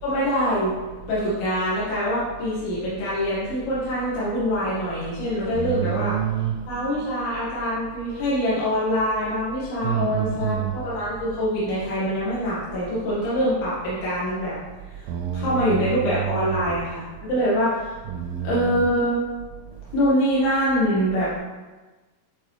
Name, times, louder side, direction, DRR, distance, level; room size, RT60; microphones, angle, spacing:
voice 1, 0.0-0.8 1.1-6.2 6.7-14.6 14.9-15.1 15.3-17.9 18.4-19.2 19.9-21.3, equal, 80° left, -10 dB, 4.1 m, -24 dB
voice 2, 5.5-6.5 9.8-10.7 15.1-16.8 18.1-18.9, right 10 dB, 85° right, 4 dB, 2.3 m, -27 dB
11.5 x 4.4 x 3.3 m, 1.2 s
omnidirectional pair, 5.0 m